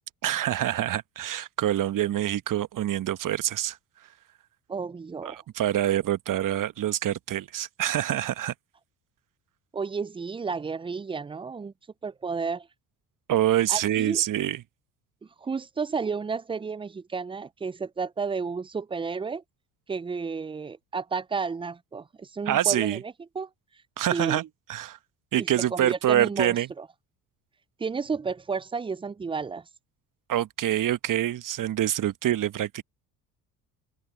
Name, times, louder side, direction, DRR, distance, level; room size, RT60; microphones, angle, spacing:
voice 1, 0.2-3.8 5.2-8.5 13.3-14.6 22.5-23.0 24.0-25.0 25.3-26.7 30.3-32.8, right 12 dB, 45° right, 1.1 m, -26 dB
voice 2, 4.7-5.4 9.7-11.7 12.0-12.7 13.7-14.2 15.4-19.4 19.9-23.5 24.1-24.4 25.4-26.9 27.8-29.6, right 5 dB, 15° right, 0.4 m, -32 dB
open air
hypercardioid pair, 65°, 44 cm